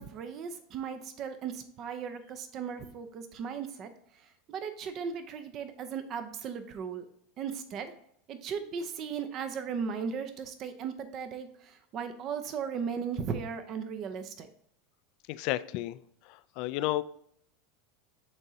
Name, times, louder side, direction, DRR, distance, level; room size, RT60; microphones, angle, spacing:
voice 1, 0.0-3.9 4.5-7.0 7.4-7.9 8.3-14.5, right 6 dB, 45° right, 9 dB, 0.7 m, -37 dB
voice 2, 15.3-16.0 16.3-17.0, left 16 dB, 60° left, 14 dB, 0.3 m, -32 dB
8.9 x 3.8 x 2.8 m, 0.70 s
hypercardioid pair, 95°, 0 cm